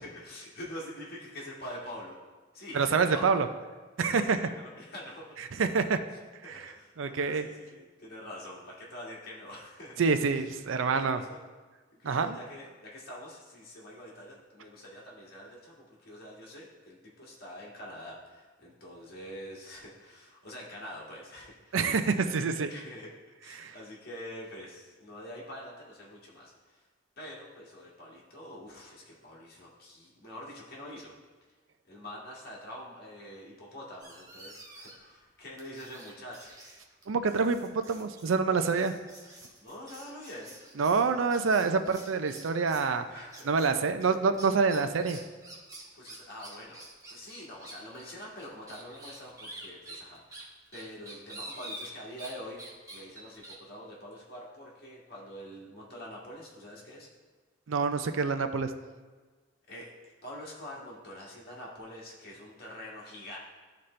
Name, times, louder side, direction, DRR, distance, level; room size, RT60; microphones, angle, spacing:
voice 1, 0.0-2.2 2.5-3.4 4.0-5.4 6.4-10.0 10.9-11.4 11.9-21.8 22.2-23.1 23.4-26.8 27.2-31.1 31.9-36.6 39.6-40.5 43.1-43.4 45.9-52.6 52.9-57.1 59.7-63.4, equal, 55° left, -4 dB, 1.7 m, -45 dB
voice 2, 2.7-3.5 4.0-4.4 5.4-6.0 6.4-7.5 10.0-11.2 12.0-12.4 21.7-22.7 23.5-23.7 37.1-39.0 40.8-43.1 43.4-45.2 57.7-58.7, right 4 dB, 90° right, 9 dB, 0.5 m, -27 dB
sound 1, 34.0-35.1 35.6-42.9 43.3-43.7 44.0-52.3 52.6-53.5, right 1 dB, 20° right, 1.1 m, -48 dB
12.5 x 4.2 x 3.2 m, 1.4 s
head